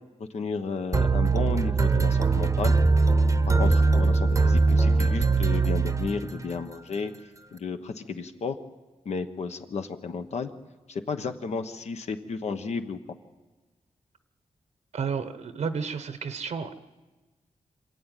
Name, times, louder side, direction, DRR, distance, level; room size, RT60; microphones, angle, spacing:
voice 1, 0.2-2.7 3.6-7.1 7.5-8.6 9.0-10.5 10.9-13.0, left 5 dB, 70° left, 7 dB, 1.2 m, -33 dB
sound 1, 0.9-6.6, right 3 dB, 25° right, 0.9 m, -22 dB
voice 2, 14.9-16.7, right 6 dB, 80° right, 10 dB, 1.1 m, -31 dB
26.0 x 12.0 x 9.2 m, 1.3 s
wide cardioid pair, 105°, 12 cm